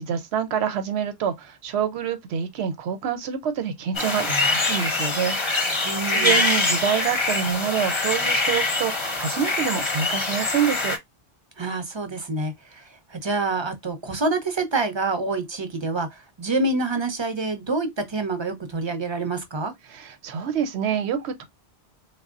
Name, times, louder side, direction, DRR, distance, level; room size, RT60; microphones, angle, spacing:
voice 1, 0.0-11.0 19.9-21.5, right 8 dB, 85° right, 0.9 m, -27 dB
sound 1, 3.9-11.0, left 3 dB, 35° left, 0.6 m, -24 dB
voice 2, 5.8-6.5 11.6-19.7, right 3 dB, 35° right, 0.6 m, -27 dB
3.4 x 2.1 x 2.4 m
omnidirectional pair, 1.1 m